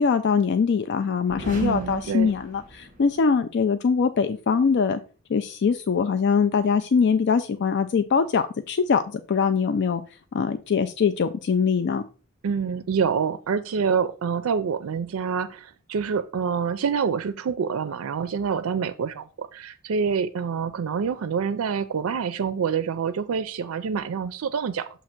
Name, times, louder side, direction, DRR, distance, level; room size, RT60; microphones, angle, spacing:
voice 1, 0.0-5.0 5.3-10.0 10.3-12.0, left 5 dB, 55° left, 9 dB, 0.4 m, -22 dB
sound 1, 1.3-3.3, right 1 dB, 40° right, 1.6 m, -39 dB
voice 2, 1.6-2.3 12.4-24.9, right 6 dB, 85° right, 12 dB, 0.4 m, -26 dB
7.2 x 2.8 x 5.8 m, 0.37 s
head